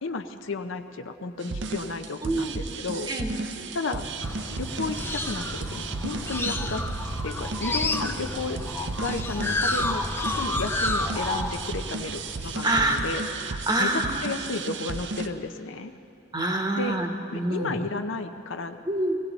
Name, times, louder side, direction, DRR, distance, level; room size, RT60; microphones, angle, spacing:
voice 1, 0.0-3.1 3.7-4.1 4.6-8.6 9.0-13.2 13.8-15.9 16.8-17.0 17.3-18.8, left 3 dB, 75° left, 8 dB, 0.7 m, -33 dB
sound 1, 1.4-15.3, right 4 dB, 60° right, 0.6 m, -34 dB
voice 2, 2.2-2.6 3.1-3.3 12.6-13.0 13.4-14.3 16.3-17.1 17.3-17.8 18.8-19.2, right 1 dB, 20° right, 3 dB, 1.0 m, -26 dB
sound 2, 4.2-13.3, left 2 dB, 10° left, 0.4 m, -31 dB
18.0 x 17.0 x 4.0 m, 2.6 s
head